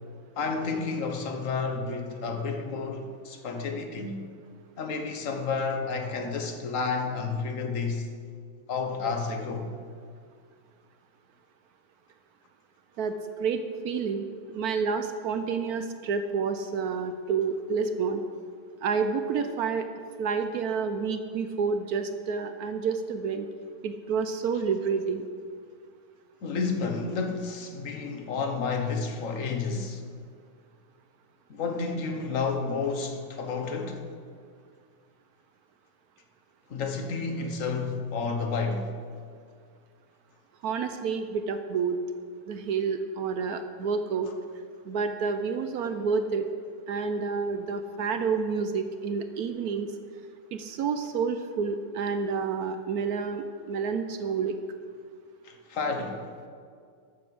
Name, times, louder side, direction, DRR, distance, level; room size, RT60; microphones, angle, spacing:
voice 1, 0.4-4.2 4.8-8.1 8.7-9.7 26.4-30.0 31.5-34.0 36.7-38.9 55.4-56.5, left 4 dB, 50° left, 1.2 m, -31 dB
voice 2, 13.0-18.2 18.8-19.9 20.2-23.5 23.8-25.3 40.6-42.0 42.5-44.3 44.8-46.5 46.9-49.9 50.5-54.6, right 5 dB, 70° right, 0.9 m, -29 dB
12.5 x 7.2 x 6.1 m
omnidirectional pair, 2.2 m